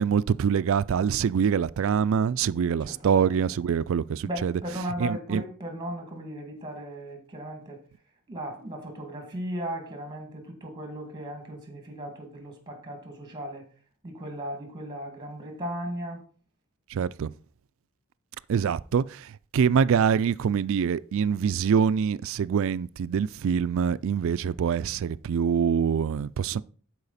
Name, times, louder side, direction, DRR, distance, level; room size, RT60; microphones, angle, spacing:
voice 1, 0.0-4.6 5.0-5.4 16.9-17.3 18.5-26.6, right 7 dB, 60° right, 0.3 m, -25 dB
voice 2, 2.8-3.3 4.2-7.8 8.3-13.7 14.0-16.2, equal, 20° right, 2.1 m, -36 dB
12.0 x 4.9 x 4.1 m
head